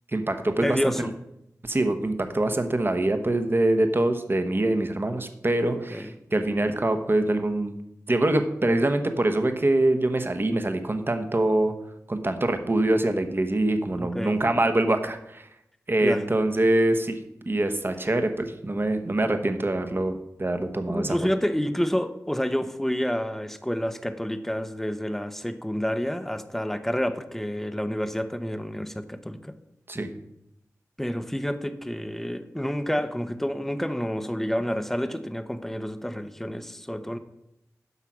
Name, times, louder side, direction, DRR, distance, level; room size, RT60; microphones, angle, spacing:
voice 1, 0.1-1.1 1.6-7.7 8.1-11.7 12.1-15.5 15.9-17.2 17.5-21.2 29.9-30.1, right 1 dB, 35° right, 7 dB, 1.0 m, -24 dB
voice 2, 0.6-1.1 5.9-6.1 14.0-14.3 16.0-16.2 20.9-29.5 31.0-37.2, equal, 5° left, 10 dB, 0.8 m, -29 dB
8.3 x 5.7 x 6.2 m, 0.83 s
cardioid pair, 40°, 6 cm